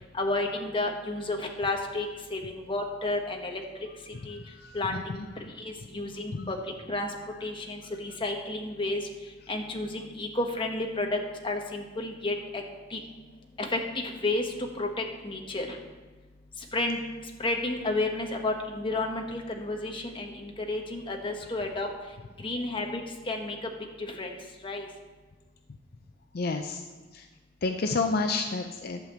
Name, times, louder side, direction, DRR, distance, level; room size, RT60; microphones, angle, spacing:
voice 1, 0.1-3.6 4.2-4.4 4.7-7.1 7.4-9.1 9.5-12.6 12.9-13.0 13.6-15.8 16.7-17.0 17.4-21.9 22.4-23.0 23.3-23.7 24.0-24.4 24.6-24.9, left 2 dB, 30° left, 2 dB, 1.2 m, -31 dB
voice 2, 4.6-5.3 6.3-6.5 26.3-26.8 27.1-27.2 27.6-29.0, left 3 dB, 55° left, 6 dB, 0.5 m, -30 dB
11.0 x 5.0 x 7.5 m, 1.3 s
head